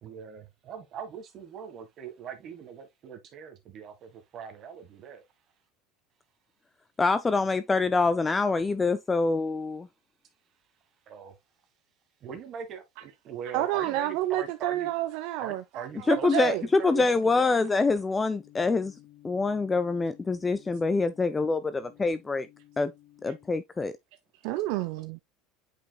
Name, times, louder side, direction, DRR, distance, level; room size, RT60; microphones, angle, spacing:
voice 1, 0.0-5.2 11.1-11.4 12.2-14.9 15.4-17.7, right 7 dB, 40° right, 1.6 m, -41 dB
voice 2, 7.0-9.9 16.1-18.9 19.2-22.5 22.8-22.9 23.2-23.9, left 3 dB, 15° left, 0.4 m, -25 dB
voice 3, 13.5-16.6 24.4-25.2, right 15 dB, 65° right, 0.6 m, -29 dB
sound 1, 18.4-23.6, left 14 dB, 60° left, 2.0 m, -55 dB
8.4 x 5.2 x 2.3 m
supercardioid pair, 140°, 0 cm